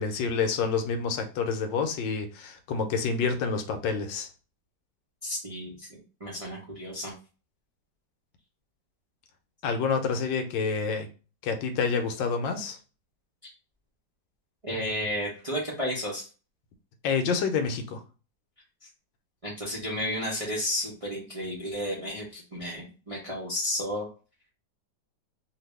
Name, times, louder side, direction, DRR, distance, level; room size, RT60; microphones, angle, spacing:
voice 1, 0.0-4.3 9.6-11.1 11.4-12.8 17.0-18.0, left 5 dB, 80° left, 6 dB, 1.3 m, -28 dB
voice 2, 5.2-7.1 14.6-16.3 19.4-24.1, equal, 35° right, -4 dB, 0.5 m, -32 dB
2.9 x 2.7 x 3.2 m, 0.34 s
omnidirectional pair, 2.0 m